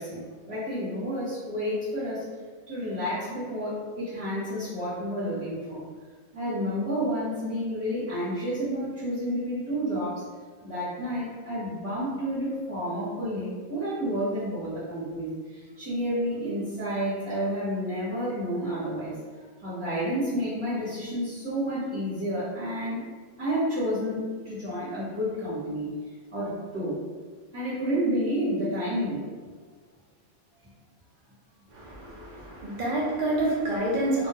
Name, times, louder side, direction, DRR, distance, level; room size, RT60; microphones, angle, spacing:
voice 1, 0.0-2.2 2.7-5.8 6.3-10.1 10.6-19.1 19.6-23.0 23.4-25.9 26.3-27.0 27.5-29.2, equal, 25° right, -13 dB, 0.8 m, -30 dB
voice 2, 31.7-34.3, right 1 dB, 80° right, -5 dB, 0.4 m, -28 dB
2.3 x 2.2 x 2.7 m, 1.5 s
omnidirectional pair, 1.5 m